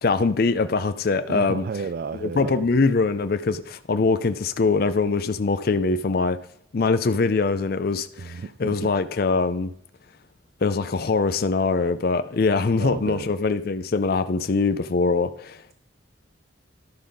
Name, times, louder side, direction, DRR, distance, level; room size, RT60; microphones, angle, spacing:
voice 1, 0.0-1.6 2.1-6.4 6.7-9.7 10.6-15.6, left 4 dB, 50° left, 0.4 m, -23 dB
voice 2, 1.3-2.6 8.2-8.9 12.8-13.3, right 4 dB, 50° right, 0.3 m, -32 dB
11.5 x 5.6 x 5.1 m
head